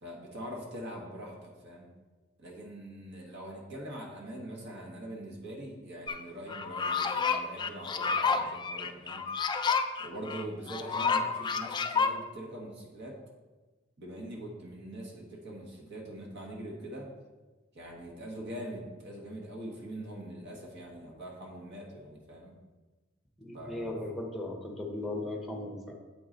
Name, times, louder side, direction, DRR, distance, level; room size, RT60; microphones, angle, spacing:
voice 1, 0.0-1.9 2.4-9.2 10.0-13.2 14.0-17.1 17.7-22.5 23.5-23.9, right 1 dB, 60° right, -1 dB, 1.3 m, -43 dB
sound 1, 6.1-6.2 6.5-12.1, left 5 dB, 20° left, 0.3 m, -30 dB
voice 2, 23.4-25.9, left 2 dB, ahead, 1 dB, 0.9 m, -37 dB
7.9 x 4.7 x 3.8 m, 1.2 s
head